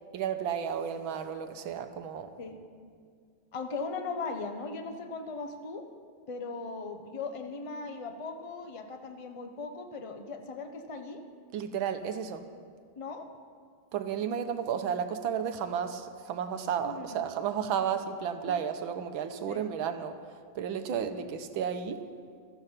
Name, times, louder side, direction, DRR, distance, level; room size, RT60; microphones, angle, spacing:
voice 1, 0.1-2.3 11.5-12.5 13.9-22.1, right 8 dB, 85° right, 9 dB, 1.6 m, -33 dB
voice 2, 3.5-5.8 6.3-11.2 13.0-13.3 16.8-17.3 17.8-17.9 19.5-19.6 20.9-21.4, left 4 dB, 35° left, 6 dB, 0.5 m, -39 dB
15.5 x 13.5 x 5.8 m, 2.1 s
omnidirectional pair, 2.2 m